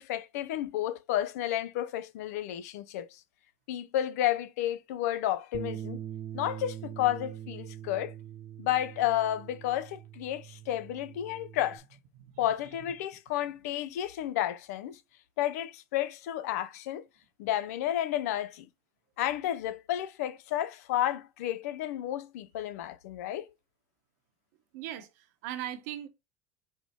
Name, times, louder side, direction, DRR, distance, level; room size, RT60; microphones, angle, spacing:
voice 1, 0.0-3.2 3.7-6.0 6.3-8.1 8.6-11.8 12.4-15.0 15.4-17.1 17.4-18.7 19.2-23.5, left 12 dB, 85° left, 0.4 m, -31 dB
Bass guitar, 5.5-11.8, right 11 dB, 45° right, 0.6 m, -43 dB
voice 2, 24.7-26.1, right 12 dB, 80° right, 0.8 m, -39 dB
4.4 x 2.1 x 4.1 m
supercardioid pair, 100°, 8 cm